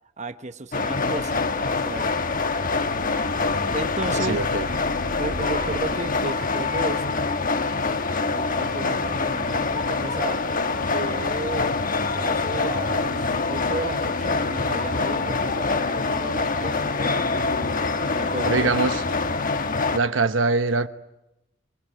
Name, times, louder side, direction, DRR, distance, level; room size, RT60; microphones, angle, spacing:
voice 1, 0.2-2.2 3.7-4.4 5.1-7.1 8.2-10.4 10.9-17.7 18.0-18.7, right 2 dB, 40° right, 1.1 m, -34 dB
sound 1, 0.7-20.0, left 3 dB, 45° left, 1.3 m, -25 dB
voice 2, 4.3-4.6 18.4-19.0 19.9-20.9, right 3 dB, 80° right, 1.1 m, -23 dB
25.5 x 22.0 x 9.8 m
head